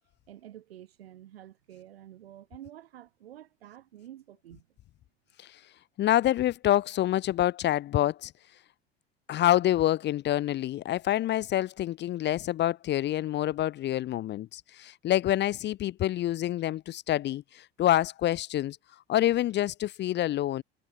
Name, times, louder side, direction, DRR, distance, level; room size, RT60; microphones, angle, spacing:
voice 1, 0.3-4.7, right 12 dB, 75° right, 5.2 m, -49 dB
voice 2, 6.0-8.3 9.3-18.8 19.1-20.6, left 13 dB, 35° left, 0.6 m, -27 dB
figure-of-eight pair, 65°, 30 cm